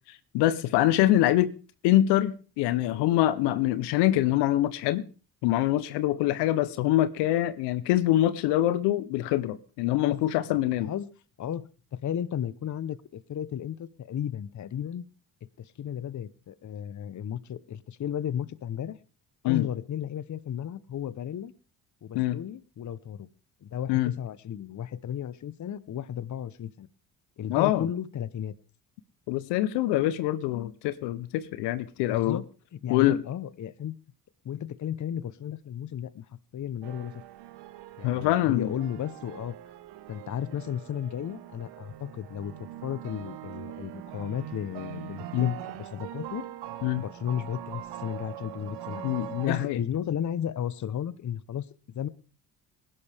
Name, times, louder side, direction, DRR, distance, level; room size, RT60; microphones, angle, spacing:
voice 1, 0.3-1.5 1.8-5.0 5.4-10.9 19.4-19.7 22.1-22.4 23.9-24.1 27.5-27.9 29.3-32.4 32.9-33.2 38.0-38.7 45.3-45.5 46.8-47.0 49.0-49.8, left 14 dB, 85° left, 0.8 m, -24 dB
voice 2, 11.4-15.1 15.6-19.0 19.4-21.5 22.0-23.3 23.6-26.9 27.4-28.5 32.1-32.5 32.7-34.0 34.4-36.3 36.5-37.1 38.0-39.6 40.1-42.5 42.8-46.5 47.0-49.1 49.4-51.7 51.9-52.1, left 9 dB, 45° left, 0.9 m, -34 dB
sound 1, 36.8-49.7, right 12 dB, 80° right, 1.0 m, -42 dB
19.5 x 11.5 x 3.4 m
supercardioid pair, 60°, 40 cm